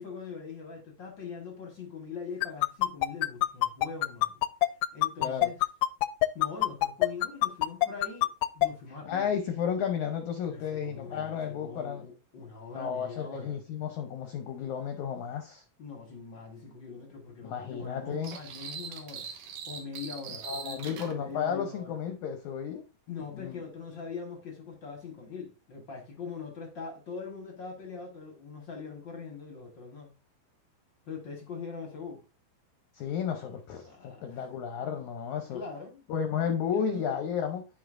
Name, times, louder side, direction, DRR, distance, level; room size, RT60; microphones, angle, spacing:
voice 1, 0.0-4.4 4.9-5.6 6.3-9.3 10.5-13.6 15.8-19.3 19.7-22.0 23.1-30.1 31.0-32.2 33.8-34.4 35.5-36.0 36.7-37.0, left 5 dB, 50° left, 1.4 m, -42 dB
sound 1, 2.4-8.7, left 17 dB, 90° left, 2.4 m, -24 dB
voice 2, 5.2-5.5 9.1-12.1 12.7-15.6 17.4-18.4 20.4-22.9 23.3-23.6 32.9-35.6 36.1-37.7, left 7 dB, 75° left, 1.8 m, -33 dB
sound 2, 18.2-21.1, right 6 dB, 75° right, 2.3 m, -41 dB
13.5 x 4.9 x 2.5 m
omnidirectional pair, 4.1 m